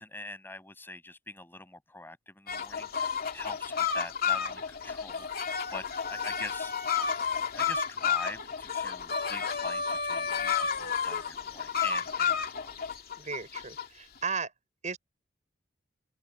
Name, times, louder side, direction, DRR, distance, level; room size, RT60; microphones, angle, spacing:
voice 1, 0.0-6.7 7.5-12.7, left 2 dB, 10° left, 7.0 m, -45 dB
sound 1, 2.5-13.9, left 6 dB, 55° left, 2.8 m, -31 dB
voice 2, 13.2-14.5 14.8-15.0, right 5 dB, 40° right, 6.7 m, -35 dB
open air
head